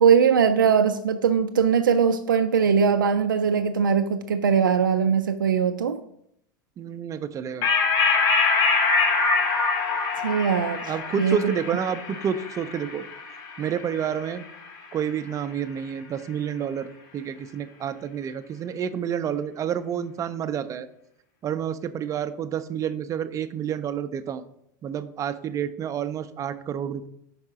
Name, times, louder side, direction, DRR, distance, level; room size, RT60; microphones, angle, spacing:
voice 1, 0.0-6.0 10.2-10.8 11.2-11.4, right 7 dB, 85° right, 8 dB, 0.4 m, -20 dB
voice 2, 6.8-7.7 10.8-13.0 13.6-14.4 14.9-20.9 21.4-24.4 24.8-27.1, right 8 dB, 30° right, 11 dB, 0.5 m, -29 dB
sound 1, 7.6-14.5, left 4 dB, 50° left, 1.6 m, -24 dB
5.3 x 4.8 x 4.8 m, 0.73 s
hypercardioid pair, 85°, 11 cm